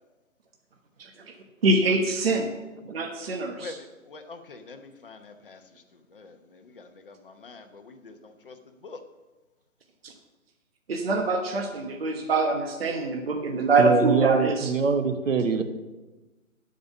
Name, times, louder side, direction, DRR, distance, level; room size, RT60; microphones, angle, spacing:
voice 1, 1.0-1.3 1.6-2.5 2.9-3.7 10.0-10.1 10.9-14.7, right 3 dB, 45° right, 3 dB, 1.1 m, -24 dB
voice 2, 3.6-9.0, left 3 dB, 40° left, 7 dB, 1.0 m, -46 dB
voice 3, 13.8-15.6, right 5 dB, 65° right, 7 dB, 1.3 m, -23 dB
12.5 x 5.3 x 7.2 m, 1.2 s
hypercardioid pair, 165°, 41 cm